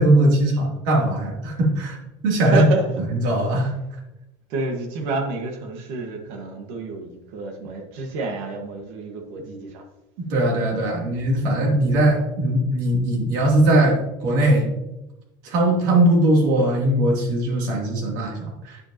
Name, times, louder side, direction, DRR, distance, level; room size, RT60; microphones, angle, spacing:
voice 1, 0.0-2.0 2.2-2.7 3.1-3.7 10.3-14.7 15.4-18.9, right 1 dB, 85° right, -1 dB, 2.9 m, -20 dB
voice 2, 2.4-3.0 4.5-9.8, right 3 dB, 60° right, 3 dB, 1.6 m, -28 dB
9.7 x 7.9 x 2.9 m, 0.96 s
cardioid pair, 175°, 10 cm